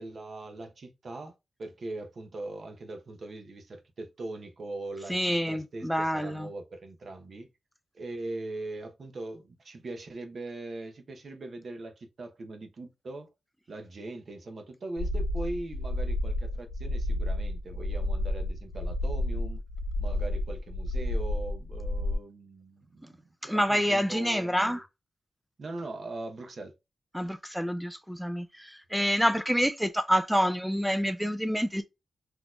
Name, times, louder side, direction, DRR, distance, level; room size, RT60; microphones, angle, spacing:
voice 1, 0.0-7.5 7.9-13.3 13.7-19.6 20.0-24.8 25.6-26.7, right 2 dB, 55° right, 0.8 m, -41 dB
voice 2, 5.1-6.5 23.4-24.8 27.1-31.8, equal, ahead, 0.4 m, -27 dB
sound 1, 15.0-22.2, left 1 dB, 50° left, 0.9 m, -31 dB
4.1 x 2.9 x 2.3 m
wide cardioid pair, 100°, 0 cm